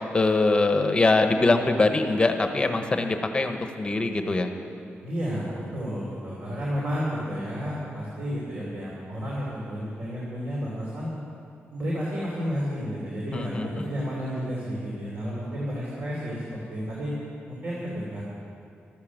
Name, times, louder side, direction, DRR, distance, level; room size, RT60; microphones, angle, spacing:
voice 1, 0.1-4.5 13.3-13.9, left 3 dB, 25° left, 6 dB, 1.0 m, -23 dB
voice 2, 5.0-11.1 11.7-17.1 17.5-18.2, equal, 50° right, -6 dB, 3.3 m, -31 dB
13.0 x 13.0 x 7.3 m, 2.5 s
wide cardioid pair, 170°, 4 cm